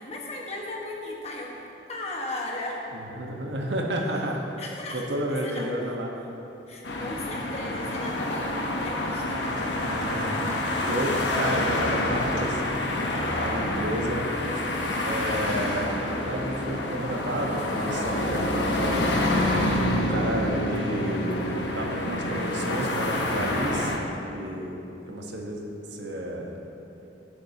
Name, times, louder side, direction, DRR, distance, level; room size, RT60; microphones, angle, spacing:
voice 1, 0.0-1.6 1.9-2.9 4.6-5.7 6.7-9.6 19.9-20.3, left 2 dB, 35° left, -2 dB, 1.4 m, -36 dB
voice 2, 2.9-4.4 4.9-6.1 9.8-10.5 10.9-12.6 13.3-14.3 15.0-19.1 19.8-21.4 21.7-23.9 24.2-24.8 25.1-25.6 25.9-26.5, right 1 dB, 80° right, 0 dB, 1.3 m, -31 dB
sound 1, 6.8-24.0, left 1 dB, 85° left, 1.0 m, -27 dB
17.0 x 7.6 x 2.9 m, 3.0 s
head